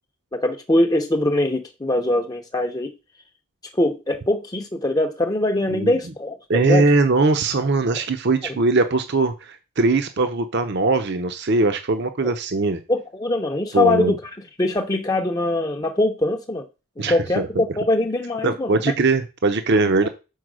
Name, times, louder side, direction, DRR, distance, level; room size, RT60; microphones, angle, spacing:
voice 1, 0.3-2.9 3.8-6.9 7.9-8.0 8.4-8.6 12.2-12.3 12.9-14.2 14.6-16.7 17.0-18.8 20.0-20.1, left 1 dB, 15° left, 0.6 m, -22 dB
voice 2, 6.5-12.8 13.7-14.2 17.0-17.5 18.4-20.1, right 3 dB, 50° right, 0.7 m, -20 dB
6.4 x 4.4 x 6.1 m
head